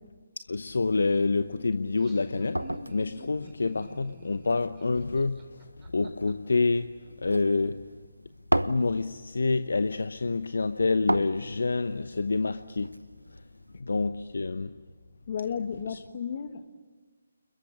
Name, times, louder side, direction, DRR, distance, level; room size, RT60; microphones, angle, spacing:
voice 1, 0.4-7.8 8.5-13.5 13.8-14.8 15.9-16.0, left 3 dB, 60° left, 0.8 m, -28 dB
sound 1, 0.9-13.8, right 1 dB, 85° right, 1.0 m, -37 dB
Laughter, 1.7-6.3, right 1 dB, 15° right, 3.5 m, -48 dB
voice 2, 15.3-16.7, left 7 dB, 40° left, 1.8 m, -33 dB
29.5 x 22.0 x 8.6 m
figure-of-eight pair, 145°, 0 cm